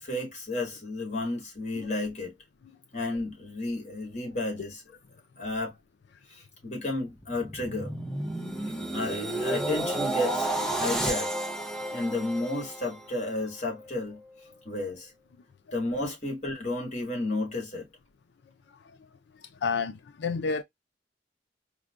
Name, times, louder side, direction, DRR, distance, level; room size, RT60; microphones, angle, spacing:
voice 1, 0.0-2.3 2.9-4.8 5.4-5.7 6.3-7.9 8.9-11.3 11.9-14.2 14.6-15.1 15.7-17.9, left 2 dB, 40° left, 1.7 m, -32 dB
sound 1, 7.1-13.3 13.8-14.0, right 1 dB, 5° left, 0.6 m, -32 dB
voice 2, 19.6-20.6, left 5 dB, 65° left, 0.4 m, -29 dB
4.6 x 2.2 x 2.3 m
head